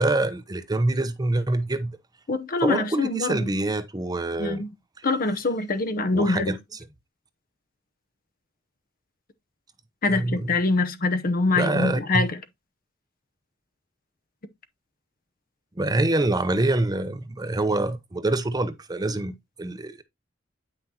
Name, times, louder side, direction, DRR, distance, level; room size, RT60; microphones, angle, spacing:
voice 1, 0.0-1.9 2.6-4.6 6.1-6.6 10.1-10.5 11.6-12.2 15.8-20.0, right 2 dB, 20° right, 0.6 m, -25 dB
voice 2, 2.3-3.5 4.4-4.7 5.0-6.5 10.0-12.4, left 3 dB, 45° left, 0.8 m, -24 dB
9.0 x 5.8 x 2.8 m
head